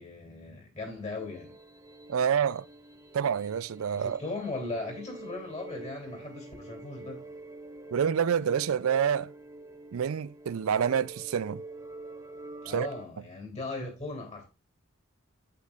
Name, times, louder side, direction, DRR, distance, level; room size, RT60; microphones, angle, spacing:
voice 1, 0.0-1.5 3.9-7.2 12.6-14.5, left 2 dB, 30° left, 2.9 m, -38 dB
sound 1, 1.2-13.1, right 2 dB, 15° right, 0.6 m, -46 dB
voice 2, 2.1-2.6 3.1-4.2 7.9-9.3 9.9-11.6 12.7-12.9, right 7 dB, 75° right, 0.4 m, -27 dB
8.4 x 8.2 x 2.4 m
head